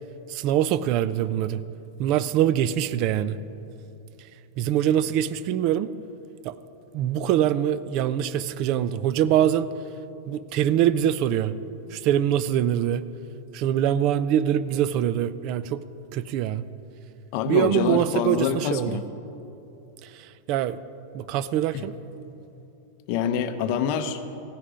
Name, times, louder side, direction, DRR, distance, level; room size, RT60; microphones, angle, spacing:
voice 1, 0.3-1.6 2.0-3.4 4.6-5.9 6.4-6.5 6.9-9.7 10.3-11.5 11.9-13.0 13.5-15.8 16.1-16.6 17.5-19.0 20.0-20.8 21.1-21.9, right 10 dB, 40° right, 16 dB, 0.4 m, -24 dB
voice 2, 17.3-19.0 21.7-21.8 23.1-24.2, left 8 dB, 45° left, 8 dB, 0.8 m, -26 dB
15.5 x 10.0 x 5.1 m, 2.8 s
supercardioid pair, 160°, 0 cm